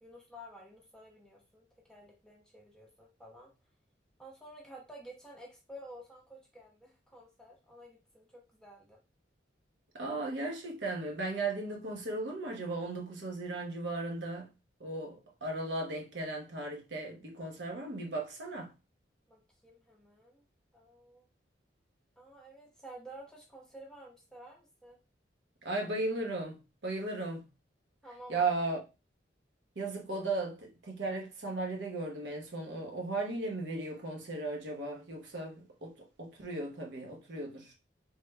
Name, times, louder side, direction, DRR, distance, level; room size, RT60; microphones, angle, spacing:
voice 1, 0.0-3.5 4.2-9.0 19.3-20.4 20.7-21.3 22.2-25.0 28.0-28.5, equal, 5° left, 0.5 m, -51 dB
voice 2, 9.9-14.5 14.8-18.7 25.6-26.6 26.8-27.4 28.3-28.8 29.8-35.9 36.2-37.7, right 2 dB, 75° right, 0.8 m, -36 dB
3.3 x 2.1 x 3.3 m
head